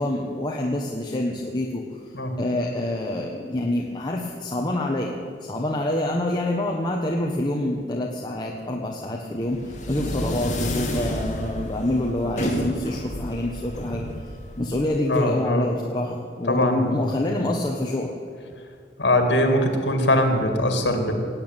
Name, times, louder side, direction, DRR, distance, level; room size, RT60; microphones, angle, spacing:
voice 1, 0.0-1.8 2.4-14.1 14.6-18.1, left 1 dB, 25° left, -1 dB, 1.2 m, -26 dB
sound 1, 9.4-15.2, equal, 45° left, 2.5 m, -30 dB
voice 2, 15.1-15.7 16.5-17.0 17.3-17.4 19.0-21.1, left 1 dB, 75° left, 5 dB, 2.5 m, -22 dB
18.5 x 8.7 x 9.0 m, 2.1 s
head